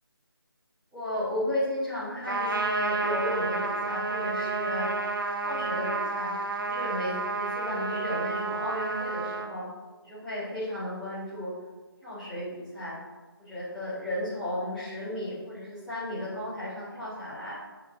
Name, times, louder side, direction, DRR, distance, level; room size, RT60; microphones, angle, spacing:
voice 1, 0.9-4.9 5.4-6.3 6.7-9.7 10.0-11.5 12.0-12.9 13.4-17.6, left 1 dB, ahead, -15 dB, 2.0 m, -34 dB
Trumpet, 2.3-9.5, right 3 dB, 60° right, 1.0 m, -30 dB
7.7 x 5.4 x 4.2 m, 1.3 s
figure-of-eight pair, 165°, 13 cm